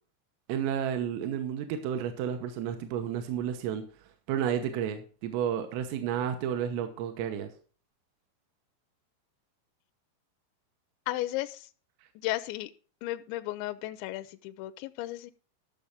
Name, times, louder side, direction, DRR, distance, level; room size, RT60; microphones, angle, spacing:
voice 1, 0.5-3.8 4.3-7.5, right 9 dB, 85° right, 7 dB, 3.7 m, -31 dB
voice 2, 11.1-11.7 12.2-12.7 13.0-15.3, left 16 dB, 85° left, 11 dB, 2.6 m, -34 dB
13.0 x 6.6 x 5.2 m, 0.40 s
omnidirectional pair, 5.8 m